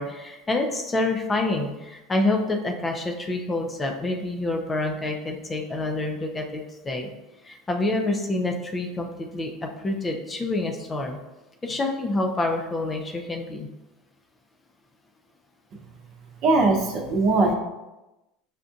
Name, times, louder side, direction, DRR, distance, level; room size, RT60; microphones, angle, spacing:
voice 1, 0.0-7.1 7.4-11.2 11.6-13.7, left 2 dB, 20° left, 2 dB, 0.6 m, -27 dB
voice 2, 16.4-17.6, right 3 dB, 50° right, 1 dB, 0.8 m, -20 dB
5.8 x 2.5 x 2.4 m, 1.0 s
hypercardioid pair, 75°, 0 cm